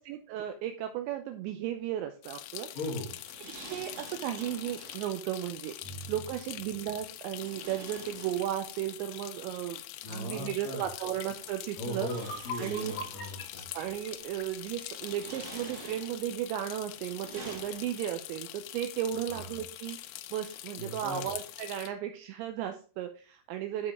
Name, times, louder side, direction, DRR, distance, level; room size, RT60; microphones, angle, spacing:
voice 1, 0.0-2.7 3.7-5.7 6.1-9.8 10.1-12.1 12.6-12.9 13.7-23.9, right 11 dB, 85° right, 6 dB, 2.6 m, -35 dB
sound 1, 2.2-21.9, left 14 dB, 85° left, 2.7 m, -44 dB
voice 2, 2.7-3.1 5.8-6.1 10.0-10.9 11.8-13.6 19.3-19.6 20.8-21.2, left 1 dB, 45° left, -3 dB, 4.2 m, -38 dB
sound 2, 2.7-5.2 7.2-8.9 10.3-10.4 11.3-13.4 14.1-14.4 14.9-16.4 16.9-18.3, right 3 dB, 40° right, 2.9 m, -49 dB
sound 3, 11.5-11.6 11.9-15.0, left 1 dB, 65° left, 6.1 m, -43 dB
12.0 x 4.9 x 3.5 m, 0.37 s
omnidirectional pair, 5.8 m